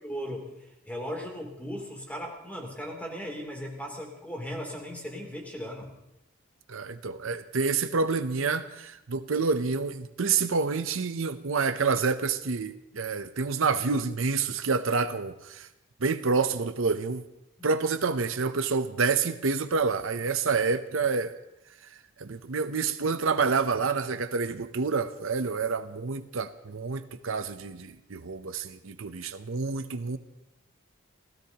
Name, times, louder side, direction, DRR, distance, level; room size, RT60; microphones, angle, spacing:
voice 1, 0.0-0.5 0.9-5.9 17.6-17.7, equal, 5° left, 0 dB, 3.1 m, -37 dB
voice 2, 6.7-15.7 16.0-17.2 17.6-21.3 22.2-30.2, right 4 dB, 65° right, 10 dB, 0.7 m, -28 dB
29.5 x 16.0 x 2.9 m, 0.90 s
head